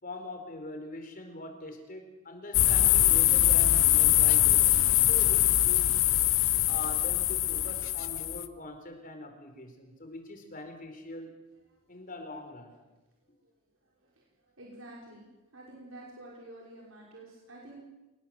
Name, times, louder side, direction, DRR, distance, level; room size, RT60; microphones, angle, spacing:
voice 1, 0.0-5.9 6.7-11.3 11.9-12.8, left 2 dB, 40° left, 5 dB, 4.6 m, -43 dB
sound 1, 2.5-8.5, left 14 dB, 70° left, 1.0 m, -23 dB
voice 2, 11.7-12.0 13.3-13.5 13.8-15.2 15.5-17.8, right 1 dB, 75° right, -3 dB, 5.6 m, -50 dB
27.0 x 20.0 x 7.9 m, 1.1 s
head